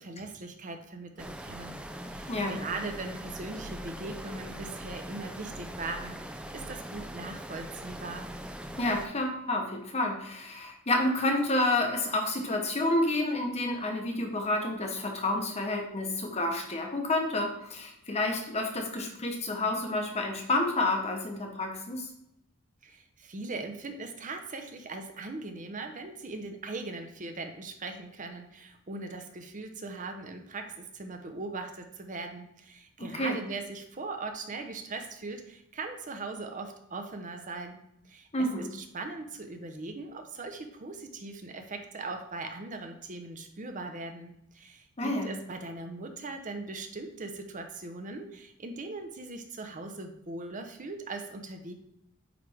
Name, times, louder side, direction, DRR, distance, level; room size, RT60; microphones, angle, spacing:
voice 1, 0.0-1.8 2.1-6.2 6.5-8.3 22.8-51.7, right 3 dB, 40° right, 6 dB, 0.8 m, -40 dB
sound 1, 1.2-9.1, equal, 5° right, 0.3 m, -41 dB
voice 2, 2.3-2.6 8.8-22.1 33.0-33.4 38.3-38.7 45.0-45.3, left 2 dB, 30° left, 2 dB, 1.0 m, -29 dB
8.7 x 3.3 x 3.5 m, 0.79 s
head